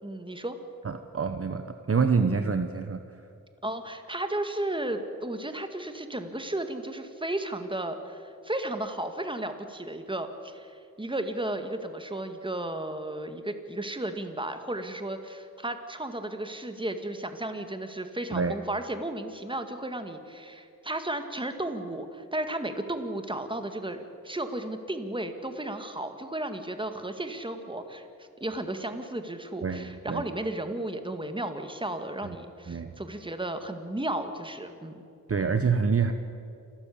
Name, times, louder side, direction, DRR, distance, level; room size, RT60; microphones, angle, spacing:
voice 1, 0.0-0.6 3.6-35.0, right 1 dB, 15° right, 7 dB, 2.1 m, -34 dB
voice 2, 0.8-3.0 18.3-18.5 29.6-30.2 32.2-32.3 32.7-32.9 35.3-36.1, right 5 dB, 40° right, 8 dB, 1.0 m, -26 dB
28.5 x 13.0 x 8.6 m, 2.6 s
cardioid pair, 75°, 34 cm